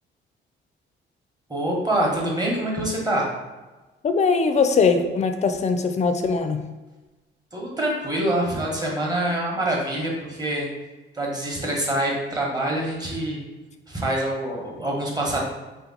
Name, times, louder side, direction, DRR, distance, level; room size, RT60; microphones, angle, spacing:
voice 1, 1.5-3.3 7.5-10.7 11.1-13.4 13.9-15.4, right 1 dB, 20° right, -2 dB, 1.0 m, -25 dB
voice 2, 4.0-6.6, left 4 dB, 35° left, 7 dB, 0.4 m, -21 dB
2.9 x 2.2 x 3.8 m, 1.2 s
cardioid pair, 90°, 20 cm